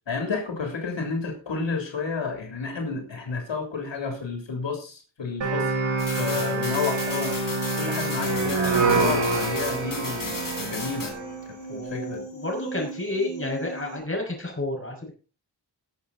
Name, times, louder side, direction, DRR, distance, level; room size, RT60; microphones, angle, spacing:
voice 1, 0.1-5.7 6.2-7.3 7.8-11.2 11.5-12.2, left 4 dB, 85° left, 2 dB, 3.3 m, -31 dB
sound 1, 5.4-11.3, right 3 dB, 85° right, 4.3 m, -26 dB
sound 2, 6.0-11.1, left 4 dB, 50° left, 4.2 m, -35 dB
sound 3, 7.2-14.0, right 5 dB, 65° left, 5.6 m, -39 dB
voice 2, 11.7-15.1, left 2 dB, 30° left, 1 dB, 6.0 m, -31 dB
20.5 x 7.3 x 4.1 m, 0.34 s
wide cardioid pair, 105°, 43 cm